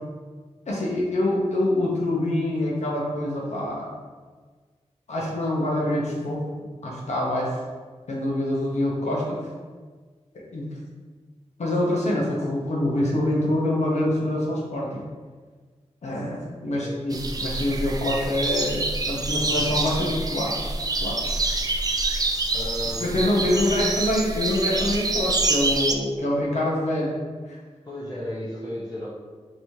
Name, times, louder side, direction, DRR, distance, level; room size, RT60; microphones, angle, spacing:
voice 1, 0.7-3.9 5.1-7.5 8.1-9.4 10.3-10.7 11.6-15.0 16.0-20.5 21.0-21.2 23.0-27.2 27.5-27.6, left 1 dB, 75° left, -4 dB, 1.0 m, -25 dB
sound 1, 17.1-25.9, right 2 dB, 35° right, 0.4 m, -26 dB
voice 2, 22.5-23.2 23.6-24.0 27.8-29.1, left 1 dB, 35° left, -8 dB, 0.8 m, -34 dB
4.6 x 3.1 x 2.8 m, 1.5 s
wide cardioid pair, 85°, 12 cm